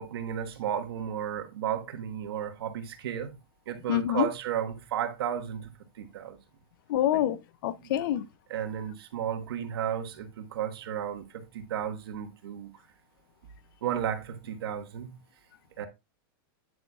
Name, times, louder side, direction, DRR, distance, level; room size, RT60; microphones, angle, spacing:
voice 1, 0.0-3.3 3.7-6.4 7.9-8.0 8.5-12.7 13.8-15.2 15.8-15.9, right 9 dB, 80° right, 1.4 m, -33 dB
voice 2, 3.9-4.3 6.9-8.3, left 11 dB, 60° left, 0.5 m, -27 dB
9.3 x 8.1 x 2.3 m
supercardioid pair, 155°, 12 cm